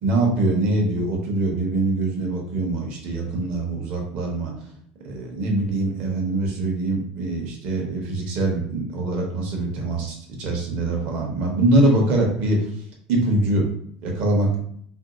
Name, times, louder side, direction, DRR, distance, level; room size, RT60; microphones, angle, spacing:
voice 1, 0.0-4.5 5.0-12.7 13.1-13.6 14.0-14.5, right 2 dB, 45° right, 0 dB, 0.9 m, -23 dB
3.0 x 2.7 x 3.8 m, 0.65 s
cardioid pair, 170°, 3 cm